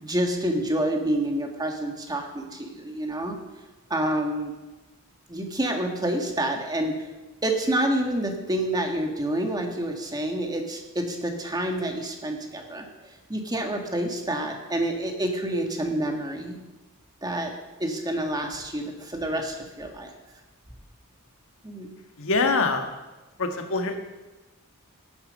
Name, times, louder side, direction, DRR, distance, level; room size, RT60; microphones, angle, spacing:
voice 1, 0.0-3.4 3.9-4.5 5.3-7.1 7.4-16.6 17.2-17.5 17.8-20.1 21.6-21.9, right 1 dB, 20° right, 3 dB, 1.8 m, -28 dB
voice 2, 22.2-22.9 23.4-24.0, left 3 dB, 65° left, 5 dB, 1.6 m, -24 dB
15.0 x 10.5 x 5.4 m, 1.1 s
head